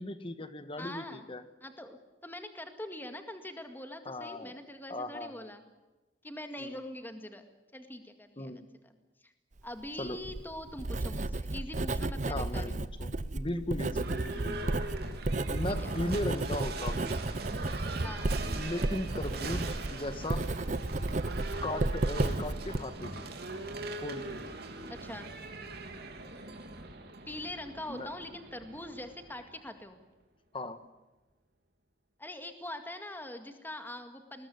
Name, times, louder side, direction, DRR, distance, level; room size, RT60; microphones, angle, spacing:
voice 1, 0.0-1.4 4.0-4.5 4.9-5.5 6.6-6.8 8.4-8.6 10.0-10.2 12.3-14.7 15.5-17.1 18.5-20.5 21.6-23.3 24.0-24.4 26.5-26.6 27.9-28.1 30.5-30.8, left 1 dB, 30° left, 11 dB, 1.5 m, -37 dB
voice 2, 0.8-1.3 1.6-5.6 6.2-7.4 7.7-9.0 9.2-9.3 9.6-12.8 15.8-15.9 18.0-18.3 24.9-25.3 27.3-30.0 32.2-34.5, left 1 dB, 10° left, 7 dB, 2.0 m, -43 dB
Writing, 10.0-22.8, right 2 dB, 40° right, 0.8 m, -33 dB
Livestock farm animals working animals / Bell, 13.9-29.8, right 2 dB, 60° right, 3.2 m, -41 dB
21.5 x 20.0 x 9.6 m, 1.1 s
head